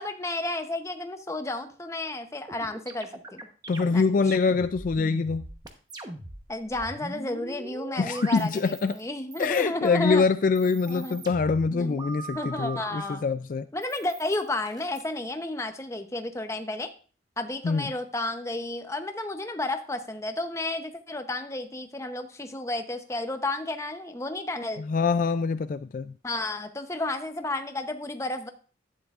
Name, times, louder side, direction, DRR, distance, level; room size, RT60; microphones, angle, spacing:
voice 1, 0.0-3.5 3.9-4.1 6.5-10.2 10.9-11.2 11.8-12.0 12.3-13.2 13.7-16.9 17.4-24.8 26.2-28.5, left 2 dB, 15° left, 7 dB, 0.7 m, -32 dB
sound 1, 2.5-9.0 9.3-10.0 10.4-13.1 13.8-15.0, right 2 dB, 20° right, 0.9 m, -41 dB
voice 2, 3.7-5.5 8.0-9.0 9.4-13.7 17.6-17.9 24.9-26.1, left 4 dB, 45° left, 12 dB, 0.3 m, -24 dB
11.5 x 9.5 x 2.4 m, 0.38 s
head